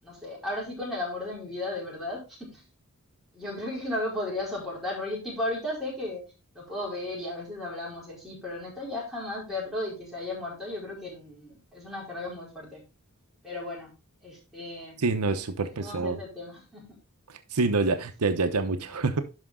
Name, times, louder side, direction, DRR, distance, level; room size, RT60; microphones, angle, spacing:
voice 1, 0.0-2.6 3.3-6.2 6.5-12.8 13.4-13.9 14.2-15.0 15.8-17.0, left 2 dB, ahead, -5 dB, 4.6 m, -35 dB
voice 2, 15.0-16.2 17.3-19.2, right 3 dB, 85° right, 9 dB, 0.9 m, -27 dB
11.5 x 5.2 x 3.7 m, 0.30 s
head